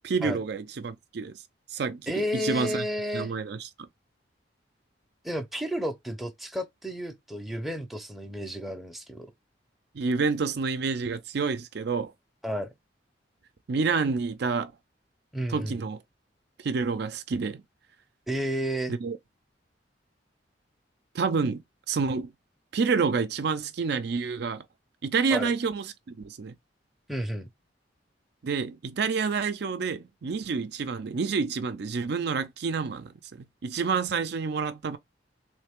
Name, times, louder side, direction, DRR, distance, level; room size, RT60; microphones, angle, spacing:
voice 1, 0.0-1.3 1.7-2.8 3.1-3.7 9.9-12.1 13.7-14.7 15.5-16.0 16.6-17.6 18.9-19.2 21.1-22.3 22.7-24.6 25.0-26.6 28.4-33.1 33.4-35.0, right 5 dB, 60° right, 0.4 m, -28 dB
voice 2, 2.1-3.3 5.2-9.3 12.4-12.7 15.3-15.8 18.3-18.9 25.3-25.5 27.1-27.5, equal, ahead, 0.6 m, -32 dB
3.2 x 3.2 x 3.5 m
head